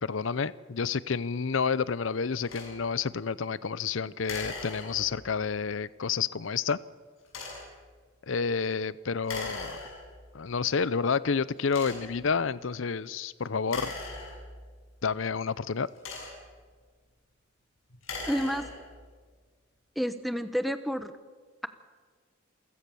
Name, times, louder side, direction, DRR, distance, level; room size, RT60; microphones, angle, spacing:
voice 1, 0.0-6.8 8.2-9.8 10.3-13.9 15.0-15.9, left 5 dB, 70° left, 19 dB, 0.6 m, -29 dB
sound 1, 2.5-2.8 4.2-5.3 7.2-7.8 9.2-10.3 10.9-11.0 11.7-12.3 13.6-14.8 15.7-16.6 17.9-19.0, left 3 dB, 85° left, 7.5 m, -40 dB
voice 2, 18.3-18.7 20.0-21.1, equal, ahead, 11 dB, 0.9 m, -29 dB
28.0 x 16.0 x 7.0 m, 1.5 s
head